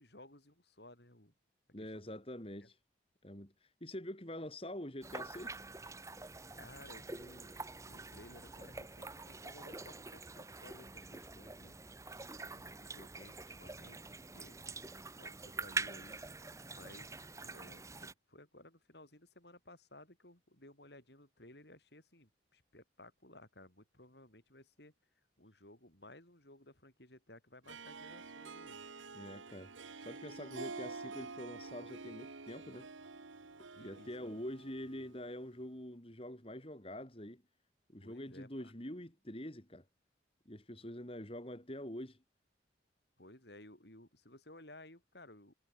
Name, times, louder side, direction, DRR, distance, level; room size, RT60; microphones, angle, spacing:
voice 1, 0.0-1.3 1.8-2.2 2.6-2.7 6.5-7.6 7.9-11.8 12.5-14.7 15.2-16.2 16.7-24.9 25.4-28.8 33.7-34.3 38.0-38.7 43.2-45.6, left 1 dB, 60° left, 6.3 m, -58 dB
voice 2, 1.7-2.8 3.2-5.6 12.1-12.3 29.1-29.7 30.0-32.9 33.8-37.4 37.9-39.8 40.5-42.2, left 1 dB, 30° left, 3.6 m, -45 dB
sound 1, 5.0-18.1, right 3 dB, 15° right, 1.0 m, -46 dB
Harp, 27.6-35.4, right 4 dB, 90° right, 1.5 m, -48 dB
head